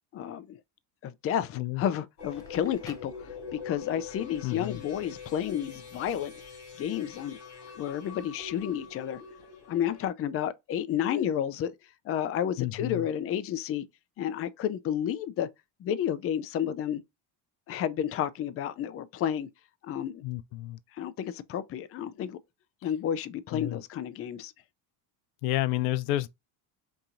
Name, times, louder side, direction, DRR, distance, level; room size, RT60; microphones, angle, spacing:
voice 1, 0.1-0.6 1.0-6.3 6.8-7.4 7.8-9.2 9.7-11.7 12.1-13.8 14.2-15.5 15.8-17.0 17.7-19.5 19.8-20.2 21.0-22.4 22.8-24.5, left 9 dB, 35° left, 0.4 m, -31 dB
sound 1, 2.2-10.1, left 6 dB, 65° left, 2.5 m, -44 dB
Crackle, 2.3-3.9, equal, 10° left, 0.9 m, -51 dB
voice 2, 4.4-4.8 12.6-13.1 20.2-20.8 23.5-23.8 25.4-26.3, left 15 dB, 85° left, 0.5 m, -30 dB
5.3 x 2.8 x 2.5 m
cardioid pair, 110°, 45 cm